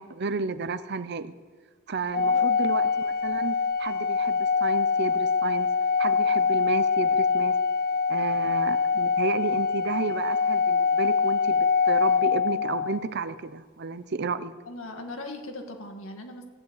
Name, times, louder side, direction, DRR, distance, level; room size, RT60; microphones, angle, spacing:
voice 1, 0.0-1.3 1.9-5.7 6.0-7.5 8.1-14.5, right 4 dB, 55° right, 13 dB, 0.7 m, -32 dB
Organ, 2.1-13.0, left 5 dB, 45° left, 1.0 m, -24 dB
voice 2, 14.7-16.4, left 2 dB, 90° left, 4 dB, 2.0 m, -39 dB
15.5 x 9.7 x 8.3 m, 1.5 s
head